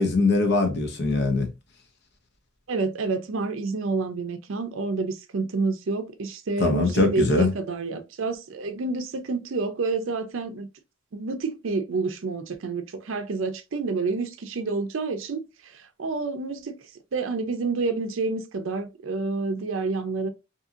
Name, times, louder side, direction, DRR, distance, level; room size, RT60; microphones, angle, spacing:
voice 1, 0.0-1.5 6.6-7.5, left 3 dB, 55° left, 0.8 m, -22 dB
voice 2, 2.7-10.7 11.1-16.8 17.1-20.3, right 3 dB, 65° right, 0.5 m, -28 dB
2.7 x 2.7 x 2.4 m
head